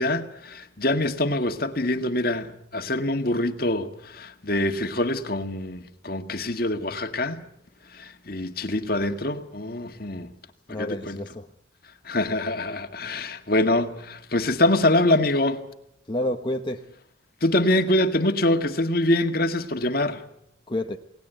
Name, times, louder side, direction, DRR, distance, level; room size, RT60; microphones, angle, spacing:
voice 1, 0.0-7.4 7.9-10.3 10.7-11.2 12.0-15.6 17.4-20.3, left 1 dB, 50° left, 1.9 m, -25 dB
voice 2, 10.7-11.5 16.1-16.9 20.7-21.0, left 1 dB, 25° left, 1.1 m, -29 dB
29.0 x 19.0 x 9.2 m
head